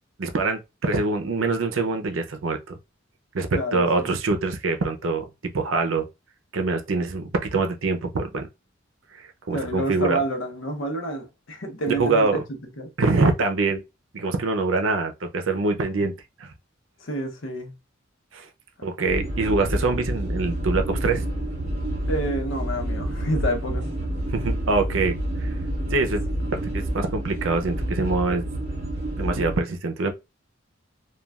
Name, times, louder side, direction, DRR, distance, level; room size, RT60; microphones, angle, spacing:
voice 1, 0.2-2.8 3.3-5.2 5.5-6.1 6.5-8.5 9.1-10.2 11.9-12.4 13.0-13.8 14.1-16.1 16.4-16.5 18.3-18.5 18.8-21.3 24.3-25.5 25.9-26.2 26.5-28.4 29.2-30.1, right 3 dB, 85° right, 0.6 m, -24 dB
voice 2, 3.5-4.1 9.5-12.9 17.0-17.7 22.1-23.9, right 1 dB, 85° left, 0.8 m, -29 dB
sound 1, 19.1-29.6, right 1 dB, 35° right, 1.4 m, -28 dB
3.1 x 2.3 x 2.3 m
head